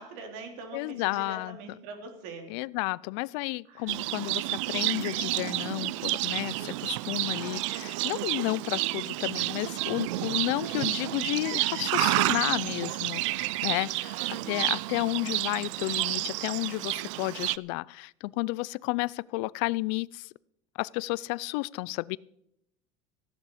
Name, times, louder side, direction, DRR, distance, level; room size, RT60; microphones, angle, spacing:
voice 1, 0.0-2.5 3.7-4.1 14.2-14.6, right 3 dB, 70° right, 3.8 m, -43 dB
voice 2, 0.7-1.6 2.5-20.3 20.8-22.2, left 23 dB, 75° left, 0.4 m, -32 dB
Livestock farm animals working animals, 3.9-17.6, right 20 dB, 90° right, 0.4 m, -30 dB
15.0 x 10.5 x 5.0 m
supercardioid pair, 135°, 15 cm